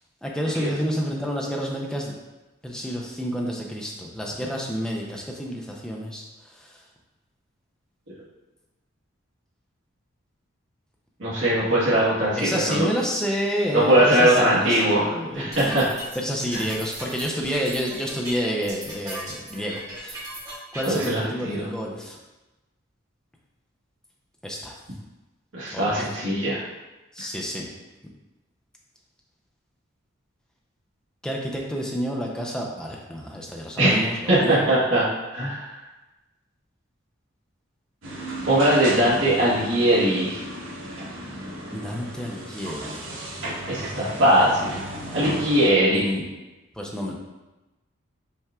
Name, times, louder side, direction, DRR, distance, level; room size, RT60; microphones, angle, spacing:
voice 1, 0.2-2.1 2.6-6.2 6.5-6.8 12.3-15.9 16.2-20.2 20.7-22.2 24.4-24.8 25.7-26.1 27.1-27.6 31.2-34.6 41.7-43.0 45.9-46.2 46.8-47.1, equal, 5° left, -2 dB, 0.5 m, -29 dB
voice 2, 11.2-12.9 13.9-15.8 16.5-16.6 20.9-21.7 25.5-26.6 33.8-35.0 35.3-35.6 38.5-40.4 43.7-44.7 45.1-46.0, right 1 dB, 60° right, -9 dB, 1.2 m, -20 dB
sound 1, 15.3-21.1, right 1 dB, 15° right, 1.4 m, -37 dB
sound 2, 38.0-45.7, right 1 dB, 85° right, 1.1 m, -34 dB
5.5 x 3.5 x 2.3 m, 1.1 s
head